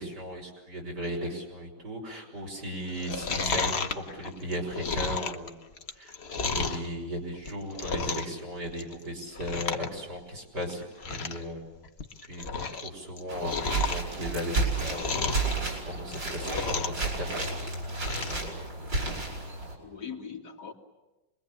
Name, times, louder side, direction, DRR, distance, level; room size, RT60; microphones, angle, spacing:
voice 1, 0.0-5.5 6.0-11.6 12.3-15.5 15.9-17.6, equal, 65° right, -1 dB, 6.1 m, -37 dB
Chewing mastication, 2.9-6.9 7.3-8.4 8.7-9.0 9.3-9.9 10.2-10.3 10.7-10.8 11.0-11.4 11.8-12.9 13.2-15.5 16.0-17.1 17.3-18.4 18.8-18.9, left 4 dB, 40° left, 1.2 m, -32 dB
sound 1, 13.3-19.7, right 3 dB, 90° right, 6.0 m, -32 dB
voice 2, 18.9-19.4 19.8-20.7, left 6 dB, 60° left, 0 dB, 2.7 m, -42 dB
26.5 x 22.0 x 8.7 m, 1.1 s
omnidirectional pair, 1.9 m